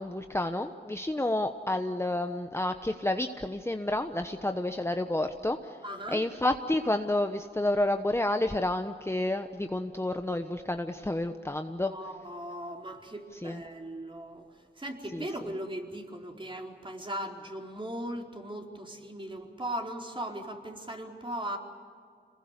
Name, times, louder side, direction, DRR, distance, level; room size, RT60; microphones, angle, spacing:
voice 1, 0.0-5.8 6.1-11.9 13.4-13.6 15.1-15.2, left 1 dB, 15° left, 6 dB, 1.1 m, -30 dB
voice 2, 5.8-6.2 11.8-21.6, right 1 dB, 25° right, 0 dB, 4.5 m, -38 dB
27.0 x 21.0 x 8.3 m, 2.1 s
cardioid pair, 50°, 19 cm